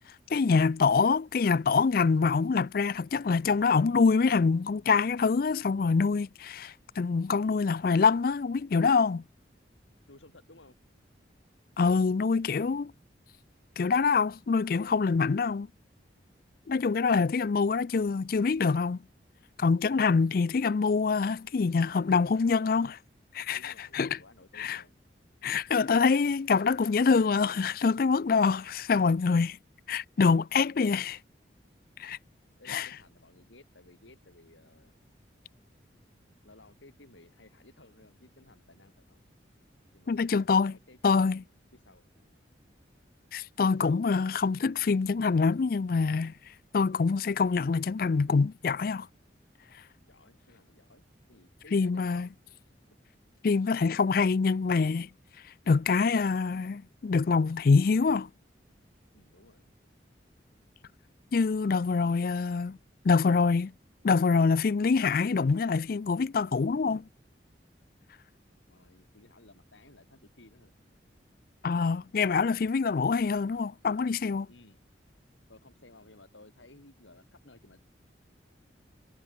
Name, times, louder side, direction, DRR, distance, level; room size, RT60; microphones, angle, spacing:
voice 1, 0.3-9.2 11.8-12.9 13.8-15.7 16.7-19.0 19.6-22.9 23.4-24.2 24.6-24.8 25.4-29.6 29.9-31.2 32.0-32.2 32.7-32.9 40.1-40.7 41.0-41.4 43.3-46.3 46.7-49.1 51.7-52.3 53.4-55.1 55.7-58.3 61.3-62.8 63.0-63.7 64.0-67.0 71.6-74.5, left 4 dB, 50° left, 0.4 m, -25 dB
voice 2, 10.1-10.8 22.3-22.9 23.5-24.9 32.6-35.1 36.4-39.2 39.9-42.4 50.1-51.0 51.3-52.3 57.6-58.1 59.1-59.6 62.0-62.3 68.7-70.7 74.5-74.8 75.5-77.8, left 2 dB, 90° left, 3.5 m, -56 dB
head